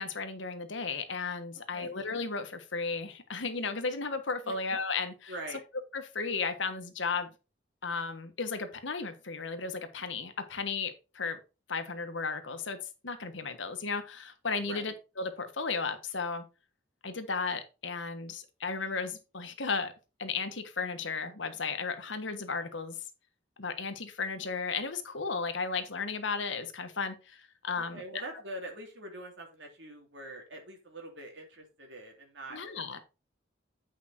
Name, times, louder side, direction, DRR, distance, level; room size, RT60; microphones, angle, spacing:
voice 1, 0.0-5.3 5.9-7.3 7.8-11.4 11.7-12.8 13.0-16.4 17.0-19.9 20.2-22.9 23.6-28.0 32.5-33.0, left 4 dB, 80° left, 8 dB, 1.3 m, -34 dB
voice 2, 5.3-5.6 14.6-14.9 27.7-32.6, right 1 dB, 70° right, 2 dB, 3.0 m, -44 dB
8.7 x 5.1 x 4.3 m, 0.30 s
head